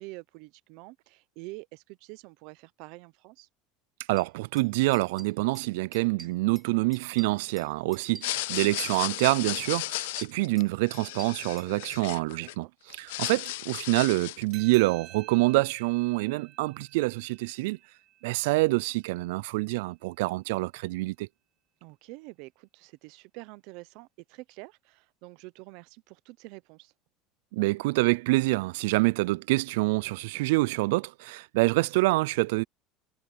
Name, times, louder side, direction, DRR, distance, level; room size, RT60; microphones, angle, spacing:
voice 1, 0.0-3.5 12.4-12.7 21.8-26.9, right 23 dB, 65° right, 0.8 m, -47 dB
voice 2, 4.1-17.8 18.2-21.3 27.5-32.6, right 22 dB, 85° right, 0.3 m, -26 dB
sound 1, 4.2-4.3 4.6-4.7 4.9-5.7 5.9-6.7 6.9-8.7 8.9-9.7 9.9-12.0, right 3 dB, 10° right, 3.9 m, -48 dB
sound 2, 8.1-12.5 12.9-14.5, left 19 dB, 90° left, 0.4 m, -35 dB
sound 3, 14.5-19.4, right 14 dB, 50° right, 4.2 m, -51 dB
supercardioid pair, 140°, 0 cm